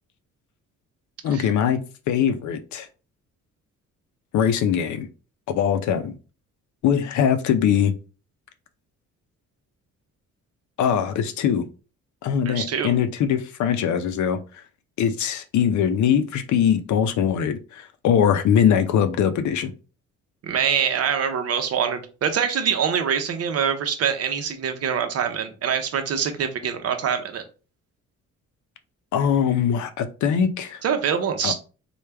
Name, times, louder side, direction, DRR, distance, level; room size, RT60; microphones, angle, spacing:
voice 1, 1.2-2.9 4.3-5.1 5.5-6.1 6.8-7.9 10.8-11.7 12.2-14.6 15.0-19.7 29.1-30.8 31.4-31.5, left 8 dB, 70° left, 9 dB, 0.6 m, -22 dB
voice 2, 12.5-12.9 20.4-27.4 30.8-31.6, right 7 dB, 55° right, 7 dB, 0.7 m, -24 dB
3.3 x 2.3 x 3.3 m, 0.34 s
cardioid pair, 90°, 30 cm